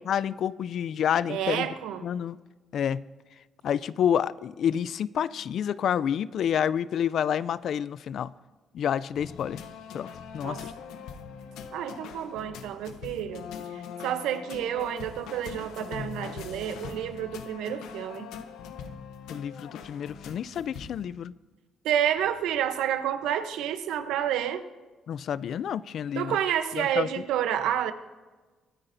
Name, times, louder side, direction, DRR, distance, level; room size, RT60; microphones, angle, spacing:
voice 1, 0.1-1.7 2.0-2.4 2.7-3.0 3.6-8.3 8.7-9.6 9.9-10.1 10.3-10.7 19.3-21.3 25.1-26.4 26.8-27.1, left 9 dB, 65° left, 0.3 m, -28 dB
voice 2, 1.3-2.1 10.4-10.6 11.7-13.4 13.7-18.3 21.8-24.6 26.2-27.9, right 10 dB, 90° right, 0.7 m, -29 dB
sound 1, 9.2-21.0, left 7 dB, 90° left, 0.8 m, -42 dB
24.5 x 9.8 x 2.6 m
cardioid pair, 90°, 0 cm